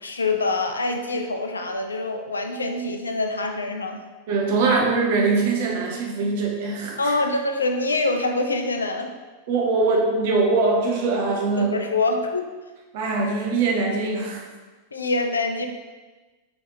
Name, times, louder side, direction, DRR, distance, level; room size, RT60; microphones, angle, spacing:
voice 1, 0.0-4.0 7.0-9.1 11.6-12.5 14.9-15.7, left 2 dB, 75° left, 5 dB, 0.3 m, -25 dB
voice 2, 4.3-7.2 9.5-11.8 12.9-14.4, right 3 dB, 50° right, 0 dB, 0.7 m, -22 dB
3.2 x 3.2 x 2.8 m, 1.3 s
figure-of-eight pair, 90°, 0 cm